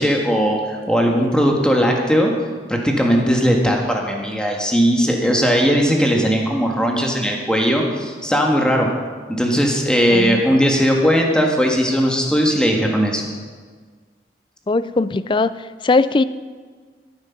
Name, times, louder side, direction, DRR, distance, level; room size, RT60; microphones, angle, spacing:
voice 1, 0.0-2.3 2.7-8.9 9.3-13.2, equal, 5° left, 1 dB, 1.6 m, -18 dB
voice 2, 10.1-10.4 14.7-15.5 15.8-16.2, left 3 dB, 30° left, 15 dB, 0.4 m, -18 dB
14.5 x 9.0 x 5.9 m, 1.5 s
head